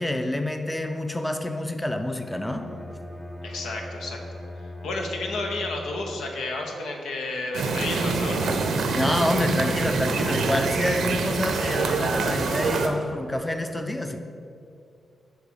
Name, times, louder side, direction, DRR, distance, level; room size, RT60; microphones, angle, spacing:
voice 1, 0.0-2.7 8.9-14.2, left 1 dB, 10° left, 7 dB, 0.5 m, -27 dB
Bowed string instrument, 2.2-6.3, left 1 dB, 30° left, 1.1 m, -39 dB
voice 2, 3.4-8.5, left 2 dB, 85° left, 2 dB, 0.8 m, -32 dB
sound 1, 7.5-12.9, right 4 dB, 80° right, 0.6 m, -25 dB
8.0 x 3.0 x 6.3 m, 2.5 s
cardioid pair, 55°, 0 cm